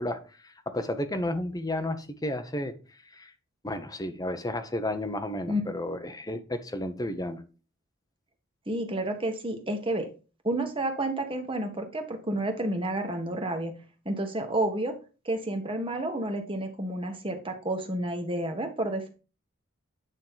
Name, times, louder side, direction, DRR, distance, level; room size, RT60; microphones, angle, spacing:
voice 1, 0.0-2.7 3.1-3.3 3.6-7.4, left 1 dB, 15° left, 7 dB, 0.7 m, -32 dB
voice 2, 8.7-10.1 10.4-13.7 14.0-15.0 15.2-19.1, right 1 dB, 25° right, 5 dB, 1.2 m, -30 dB
9.2 x 3.1 x 5.5 m, 0.34 s
head